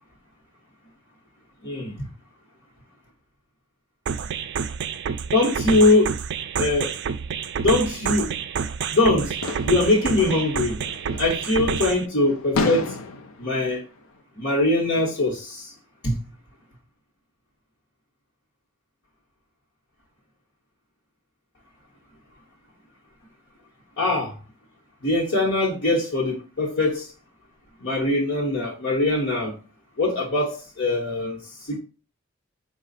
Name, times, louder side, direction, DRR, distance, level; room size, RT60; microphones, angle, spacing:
voice 1, 1.6-2.1 5.3-6.2 6.6-6.9 7.6-8.3 8.9-9.3 9.6-10.8 11.2-13.0 13.4-13.8 14.3-15.7 16.0-16.2 24.0-24.4 25.0-27.1 27.8-29.5 30.0-31.8, left 2 dB, 55° left, 1.2 m, -22 dB
sound 1, 4.1-12.1, right 6 dB, 55° right, 0.4 m, -28 dB
sound 2, 9.2-11.8 12.1-13.5, left 3 dB, 75° left, 0.5 m, -31 dB
5.0 x 2.3 x 4.0 m
head